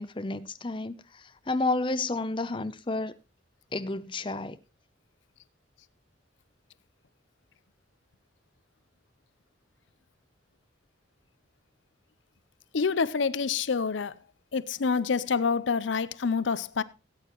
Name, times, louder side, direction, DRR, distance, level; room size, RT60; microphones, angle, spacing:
voice 1, 0.0-3.1 3.7-4.6, left 2 dB, 25° left, 0.6 m, -31 dB
voice 2, 12.7-14.1 14.5-16.8, left 5 dB, 80° left, 0.6 m, -27 dB
17.5 x 8.9 x 3.0 m
head